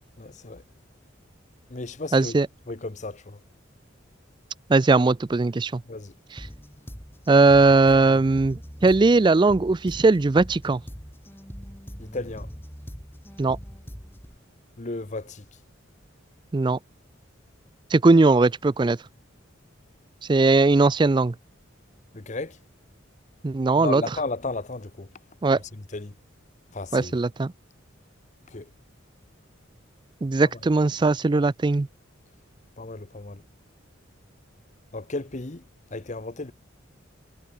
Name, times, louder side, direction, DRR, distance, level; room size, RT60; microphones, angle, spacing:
voice 1, 0.2-0.6 1.7-2.4 2.7-3.4 5.9-6.1 12.0-12.5 14.8-15.4 22.1-22.6 23.8-25.1 25.7-26.1 26.7-27.1 28.5-28.7 32.8-33.4 34.9-35.6 35.9-36.5, left 3 dB, 35° left, 1.0 m, -34 dB
voice 2, 2.1-2.5 4.7-5.8 7.3-10.8 13.4-13.6 16.5-16.8 17.9-19.0 20.3-21.3 23.4-24.0 25.4-25.6 26.9-27.5 30.2-31.9, right 3 dB, 25° right, 0.4 m, -19 dB
sound 1, 6.4-14.4, equal, 10° left, 5.1 m, -42 dB
head